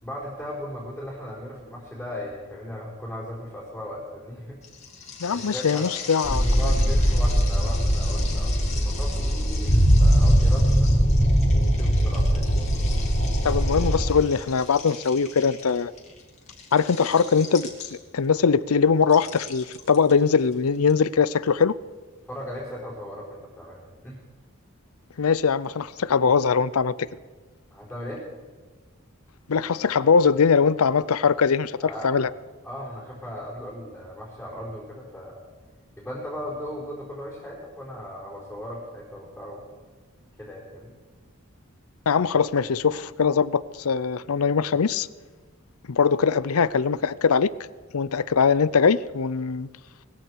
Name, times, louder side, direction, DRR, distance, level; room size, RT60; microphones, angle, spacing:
voice 1, 0.0-4.6 5.3-5.9 6.5-10.9 11.4-12.5 22.3-24.2 27.7-28.3 31.8-32.2 32.6-35.4 36.0-39.6 40.4-40.9, equal, ahead, -6 dB, 4.3 m, -37 dB
sound 1, 4.6-18.2 19.0-20.9, left 6 dB, 30° left, 2.6 m, -40 dB
voice 2, 5.2-6.7 13.4-15.9 16.7-21.7 25.2-27.1 29.5-31.8 32.0-32.3 42.1-45.1 45.9-47.5 47.9-49.7, left 5 dB, 85° left, 19 dB, 0.6 m, -21 dB
sound 2, 6.2-14.1, equal, 50° left, 3.0 m, -20 dB
20.5 x 15.0 x 4.7 m, 1.4 s
head